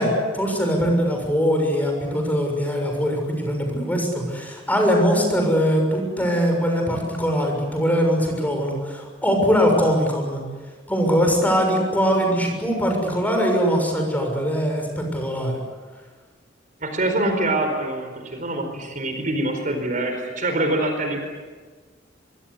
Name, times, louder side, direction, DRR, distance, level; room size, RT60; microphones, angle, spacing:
voice 1, 0.0-10.4 10.9-15.6, equal, 10° left, 2 dB, 6.8 m, -21 dB
voice 2, 16.8-21.2, right 1 dB, 45° right, 5 dB, 4.5 m, -24 dB
25.5 x 23.5 x 8.5 m, 1.4 s
head